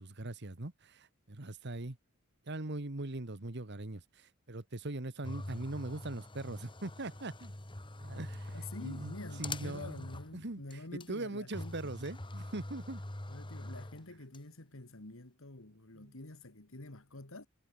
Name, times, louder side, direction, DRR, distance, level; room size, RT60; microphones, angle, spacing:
voice 1, 0.0-2.0 2.5-7.5 8.0-10.1 10.3-13.0 15.9-16.1, right 2 dB, 55° right, 1.6 m, -41 dB
sound 1, 5.2-10.4 10.7-10.8 11.0-11.1 11.5-14.4, left 2 dB, 25° left, 1.6 m, -44 dB
voice 2, 8.5-11.8 13.3-17.5, left 2 dB, 65° left, 2.3 m, -47 dB
head